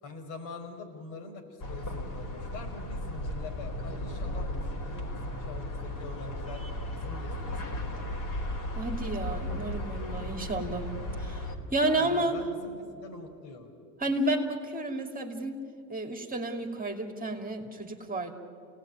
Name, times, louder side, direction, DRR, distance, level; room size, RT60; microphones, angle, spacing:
voice 1, 0.0-6.6 6.9-8.0 11.8-13.7, left 4 dB, 65° left, 3 dB, 5.4 m, -44 dB
sound 1, 1.6-11.6, left 1 dB, 40° left, 4.2 m, -35 dB
voice 2, 8.7-10.9 11.2-12.4 14.0-15.6 15.9-18.3, right 2 dB, 20° right, 3 dB, 2.9 m, -31 dB
27.5 x 18.5 x 9.4 m, 2.5 s
supercardioid pair, 90°, 47 cm